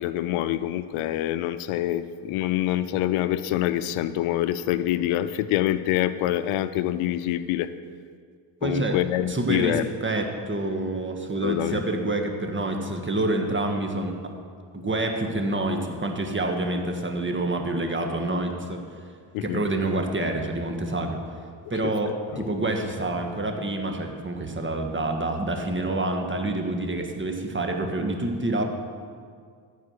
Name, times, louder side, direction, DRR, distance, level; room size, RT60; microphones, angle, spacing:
voice 1, 0.0-7.7 8.6-9.8 11.4-11.8 19.3-19.6 22.0-22.5, left 13 dB, 85° left, 13 dB, 0.6 m, -26 dB
voice 2, 8.6-9.0 9.3-14.2 14.7-18.8 19.4-21.2 21.7-28.7, right 2 dB, 25° right, 3 dB, 1.5 m, -27 dB
14.5 x 4.9 x 6.4 m, 2.1 s
supercardioid pair, 65°, 49 cm